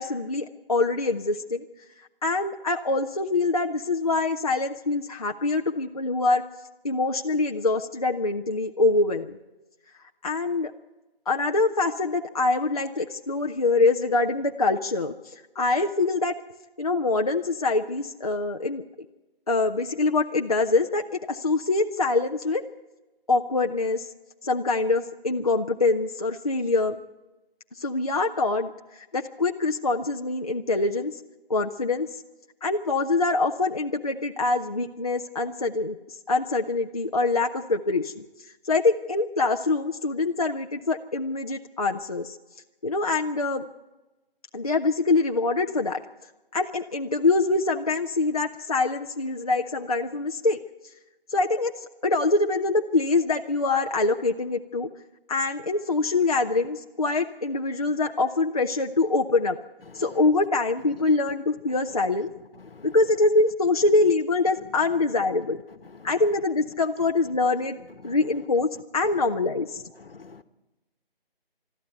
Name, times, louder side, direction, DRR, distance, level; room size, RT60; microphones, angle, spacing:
voice 1, 0.0-1.6 2.2-6.4 6.8-9.4 10.2-10.7 11.3-16.3 16.8-18.8 19.5-22.6 23.3-24.1 24.4-27.0 27.8-28.7 29.1-31.2 31.5-32.1 32.6-36.0 36.3-38.2 38.7-42.4 42.8-43.7 44.5-46.0 46.5-50.6 51.3-51.7 52.0-54.9 55.3-59.6 59.9-62.3 62.8-65.6 66.0-67.8 68.0-69.8, left 3 dB, 40° left, 0.7 m, -24 dB
voice 2, 59.9-60.3 62.5-63.0 64.6-65.1 65.7-66.3 68.0-68.2 69.0-69.2 70.0-70.4, left 4 dB, 70° left, 1.3 m, -47 dB
22.5 x 13.0 x 9.1 m
figure-of-eight pair, 175°, 30 cm